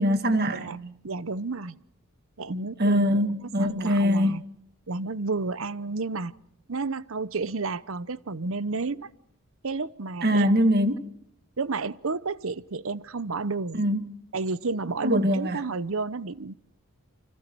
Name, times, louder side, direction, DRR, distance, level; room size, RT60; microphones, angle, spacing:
voice 1, 0.0-0.9 2.5-4.4 10.2-11.1 13.7-14.0 15.0-15.6, equal, 45° right, 1.9 m, -23 dB
voice 2, 1.0-1.8 2.4-3.1 3.6-4.4 4.9-6.3 6.7-9.1 9.6-10.5 11.6-13.8 14.3-16.5, right 3 dB, 65° right, 0.8 m, -31 dB
29.0 x 25.5 x 4.6 m
head